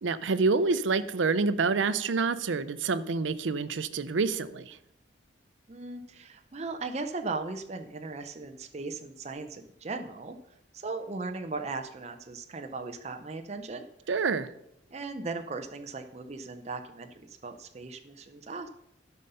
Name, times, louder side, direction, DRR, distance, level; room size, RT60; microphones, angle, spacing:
voice 1, 0.0-4.8 14.1-14.5, right 4 dB, 80° right, 14 dB, 0.6 m, -27 dB
voice 2, 5.7-10.4 10.7-13.8 14.9-18.7, right 3 dB, 35° right, 6 dB, 0.6 m, -37 dB
12.0 x 5.5 x 5.5 m, 0.80 s
head